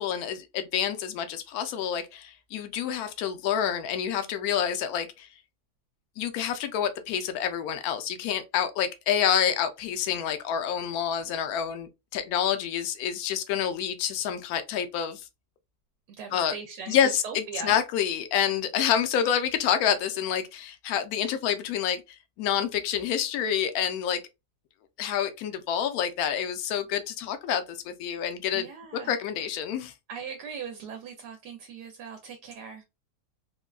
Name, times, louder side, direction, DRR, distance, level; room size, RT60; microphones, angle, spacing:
voice 1, 0.0-5.3 6.2-15.3 16.3-16.5 16.9-24.2 25.0-28.7 29.0-29.9, left 9 dB, 70° left, 1.0 m, -28 dB
voice 2, 16.2-17.8 28.5-29.2 30.1-32.8, right 6 dB, 75° right, 1.1 m, -39 dB
3.6 x 2.1 x 2.3 m
omnidirectional pair, 1.8 m